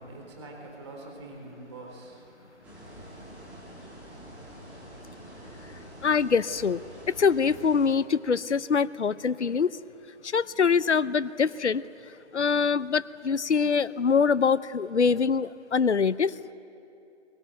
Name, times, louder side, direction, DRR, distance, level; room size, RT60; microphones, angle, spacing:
voice 1, 0.0-3.2, right 2 dB, 25° right, 1 dB, 4.0 m, -45 dB
sound 1, 2.6-7.9, equal, 5° right, 1.8 m, -46 dB
voice 2, 6.0-6.8 7.1-9.7 10.2-11.8 12.3-16.3, left 5 dB, 75° left, 17 dB, 0.7 m, -24 dB
23.0 x 21.5 x 9.0 m, 2.8 s
figure-of-eight pair, 160°, 35 cm